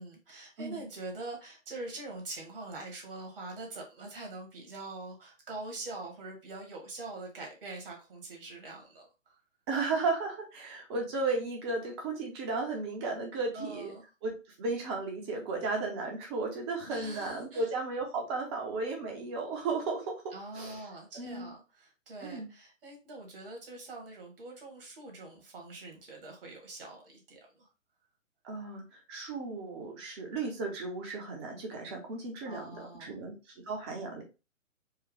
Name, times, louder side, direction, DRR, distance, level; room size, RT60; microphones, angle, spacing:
voice 1, 0.0-9.4 13.5-14.0 16.8-17.7 20.3-27.7 32.4-33.1, right 2 dB, 40° right, 1 dB, 1.7 m, -44 dB
voice 2, 9.7-13.9 14.2-14.3 14.6-20.1 20.5-20.8 21.1-21.5 22.2-22.5 28.4-33.3 33.7-34.2, right 3 dB, 20° right, 1 dB, 0.9 m, -34 dB
4.7 x 2.3 x 3.4 m, 0.29 s
figure-of-eight pair, 130°, 40 cm